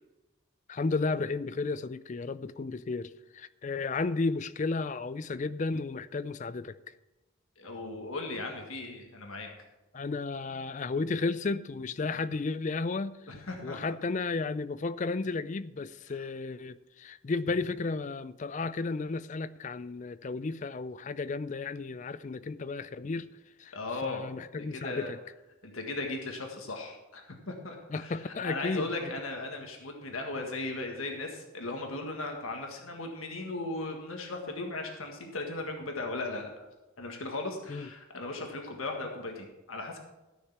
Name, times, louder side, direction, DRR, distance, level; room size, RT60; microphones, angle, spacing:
voice 1, 0.7-6.8 9.9-13.2 13.6-23.3 23.6-23.7 24.0-25.2 27.9-28.9 37.7-37.9, left 3 dB, 35° left, 15 dB, 0.4 m, -33 dB
voice 2, 7.6-9.6 13.3-13.8 16.1-16.2 23.7-24.2 24.7-25.1 25.6-36.7 37.0-40.0, left 2 dB, 90° left, 2 dB, 1.7 m, -37 dB
13.5 x 6.5 x 6.0 m, 1.1 s
head